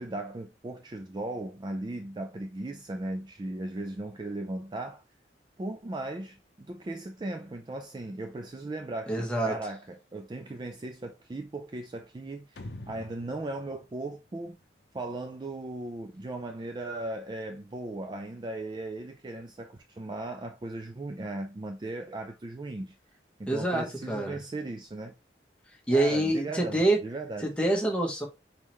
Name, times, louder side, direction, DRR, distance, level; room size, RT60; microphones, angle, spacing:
voice 1, 0.0-5.0 5.6-14.6 14.9-22.9 23.4-25.1 25.9-27.5, right 2 dB, 25° right, 0.3 m, -37 dB
voice 2, 9.1-9.6 23.5-24.4 25.9-27.0 27.4-28.3, right 1 dB, 5° left, 1.1 m, -26 dB
sound 1, 12.6-15.1, left 1 dB, 65° left, 0.6 m, -46 dB
4.3 x 3.7 x 3.0 m
head